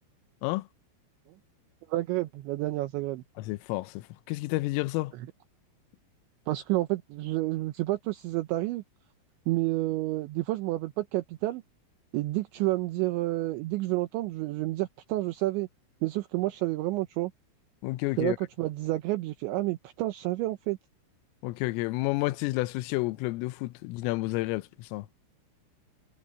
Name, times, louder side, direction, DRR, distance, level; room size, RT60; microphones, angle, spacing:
voice 1, 1.9-3.2 6.5-8.8 9.5-11.6 12.1-15.7 16.0-17.3 18.2-20.8, right 18 dB, 75° right, 3.0 m, -29 dB
voice 2, 3.4-5.1 17.8-18.4 21.4-25.1, left 21 dB, 85° left, 3.3 m, -30 dB
omnidirectional pair, 5.8 m